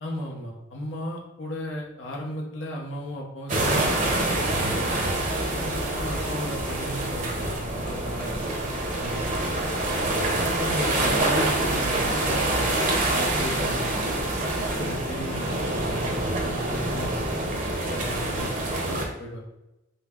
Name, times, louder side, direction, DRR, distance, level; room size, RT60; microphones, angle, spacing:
voice 1, 0.0-4.8 5.5-8.5 8.9-9.2 10.1-12.8 13.1-14.3 14.8-19.4, equal, 85° left, -1 dB, 0.9 m, -35 dB
sound 1, 3.5-19.1, right 1 dB, 45° right, 0.7 m, -26 dB
5.3 x 2.2 x 3.7 m, 0.94 s
head